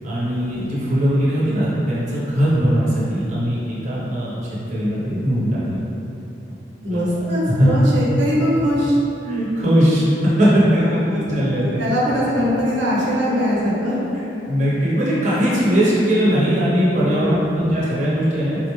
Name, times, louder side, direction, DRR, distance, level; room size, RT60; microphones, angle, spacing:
voice 1, 0.0-5.8 6.9-7.0 7.6-7.7 9.2-11.8 14.5-18.6, equal, 40° right, -8 dB, 0.7 m, -19 dB
voice 2, 6.8-9.0 10.4-14.0 16.9-17.4, equal, 85° right, -6 dB, 0.7 m, -22 dB
3.7 x 2.1 x 3.0 m, 3.0 s
head